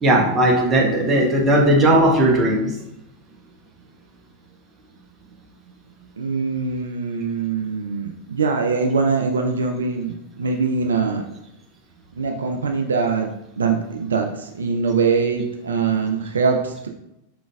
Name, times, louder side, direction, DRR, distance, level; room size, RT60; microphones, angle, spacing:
voice 1, 0.0-2.7, right 1 dB, 20° right, -1 dB, 0.9 m, -17 dB
voice 2, 6.2-11.2 12.2-13.3 13.6-16.9, right 5 dB, 70° right, 3 dB, 0.4 m, -22 dB
4.8 x 3.8 x 2.3 m, 0.86 s
figure-of-eight pair, 90°, 0 cm